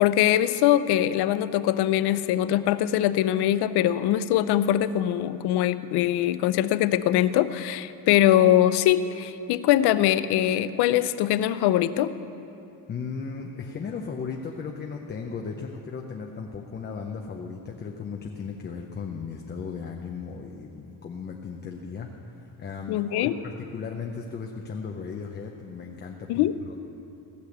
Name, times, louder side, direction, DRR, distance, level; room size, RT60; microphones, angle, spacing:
voice 1, 0.0-12.1 22.9-23.3 26.3-26.6, left 12 dB, 80° left, 14 dB, 0.6 m, -22 dB
voice 2, 12.9-26.8, left 5 dB, 25° left, 2 dB, 0.6 m, -36 dB
16.5 x 6.7 x 8.0 m, 2.9 s
cardioid pair, 165°, 39 cm